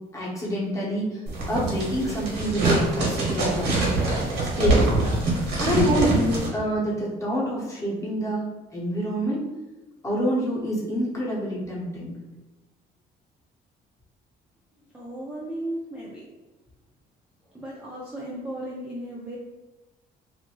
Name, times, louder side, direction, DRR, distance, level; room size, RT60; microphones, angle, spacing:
voice 1, 0.1-1.2 1.5-3.7 4.6-4.9 5.6-8.4 8.7-9.5 10.0-12.1, equal, 20° left, -6 dB, 1.0 m, -26 dB
sound 1, 1.3-6.5, right 2 dB, 90° right, 1.0 m, -24 dB
voice 2, 14.9-16.2 17.5-19.4, right 1 dB, 5° right, -6 dB, 0.5 m, -35 dB
2.7 x 2.5 x 2.9 m, 1.1 s
cardioid pair, 110°, 17 cm